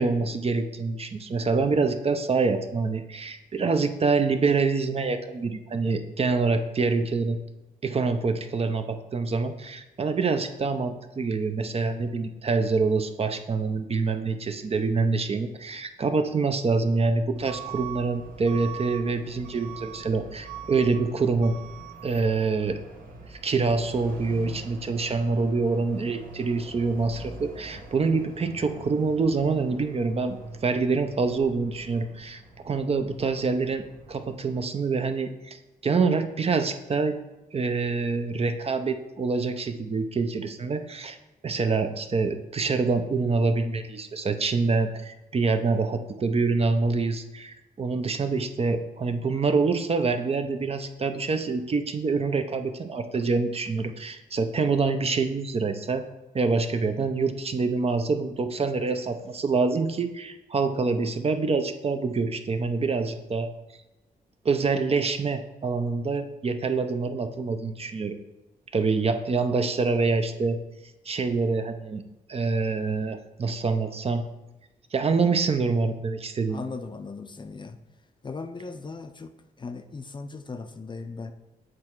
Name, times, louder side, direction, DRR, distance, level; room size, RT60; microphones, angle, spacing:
voice 1, 0.0-7.4 7.8-21.5 22.0-22.8 23.3-30.4 30.6-37.2 37.5-41.2 41.4-56.0 56.3-63.5 64.4-68.2 68.7-70.6 71.1-72.0 72.3-74.2 74.9-76.6, right 4 dB, 40° right, 8 dB, 0.6 m, -26 dB
Truck / Alarm, 17.3-34.6, right 5 dB, 60° right, 1.2 m, -43 dB
voice 2, 76.5-77.8 78.2-81.3, left 4 dB, 30° left, 8 dB, 0.5 m, -38 dB
7.7 x 3.2 x 4.5 m, 0.98 s
cardioid pair, 75°, 16 cm